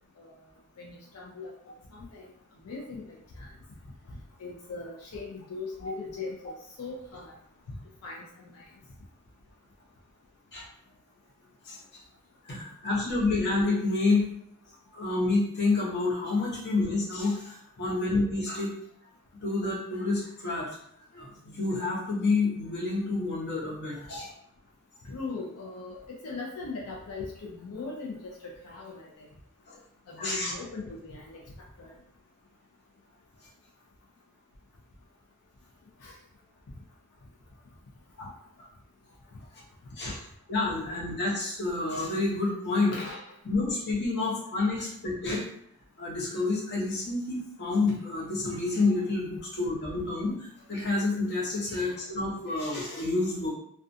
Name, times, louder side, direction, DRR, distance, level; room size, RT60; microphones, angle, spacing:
voice 1, 0.8-1.5 1.9-2.3 2.6-3.5 4.1-7.3 7.7-7.8 8.0-8.7 25.0-29.3 30.1-31.4 31.8-31.9 36.0-36.2 40.0-40.1 40.8-40.9 42.9-43.4 51.7-51.8, left 3 dB, 80° left, -3 dB, 0.5 m, -40 dB
voice 2, 12.5-14.2 14.9-18.7 19.4-20.7 21.1-24.3 29.7-29.8 30.2-30.5 38.2-38.3 38.6-38.7 40.0-40.2 40.5-42.9 43.4-45.4 46.0-53.5, left 3 dB, 50° left, -5 dB, 0.8 m, -28 dB
2.4 x 2.2 x 2.5 m, 0.71 s
head